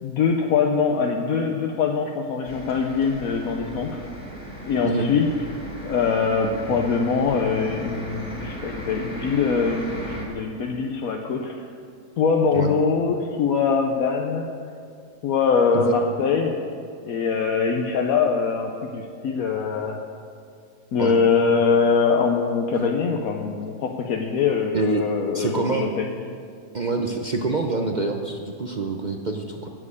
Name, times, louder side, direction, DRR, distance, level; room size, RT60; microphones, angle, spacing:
voice 1, 0.0-4.0 4.6-5.3 5.8-11.7 12.2-14.5 15.2-16.6 17.0-20.0 20.9-26.1, left 5 dB, 70° left, 2 dB, 1.2 m, -23 dB
sound 1, 2.4-10.2, equal, 35° left, 2.6 m, -37 dB
voice 2, 24.7-25.1 25.3-26.0 26.7-29.7, right 3 dB, 50° right, 3 dB, 0.5 m, -26 dB
11.0 x 7.5 x 8.3 m, 2.3 s
omnidirectional pair, 1.6 m